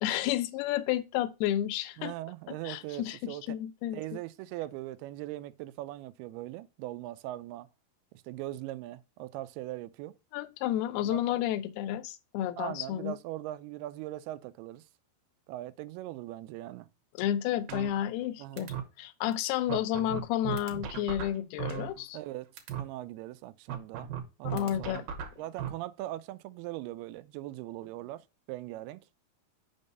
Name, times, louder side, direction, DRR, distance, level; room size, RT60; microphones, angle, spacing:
voice 1, 0.0-2.1 2.7-4.0 10.3-13.2 17.2-22.2 24.4-25.0, left 12 dB, 85° left, 2.5 m, -31 dB
voice 2, 2.0-3.4 3.9-7.7 8.3-10.1 11.0-11.4 12.6-14.8 15.5-16.9 18.4-18.8 19.7-19.9 22.1-22.5 22.8-25.1 25.4-28.2 28.5-29.0, right 15 dB, 85° right, 2.5 m, -40 dB
sound 1, 17.7-18.3 18.6-18.8 19.3-19.4 19.7-22.3 22.6-22.8 23.7-25.7, right 9 dB, 70° right, 2.6 m, -36 dB
6.2 x 5.4 x 5.3 m
omnidirectional pair, 4.5 m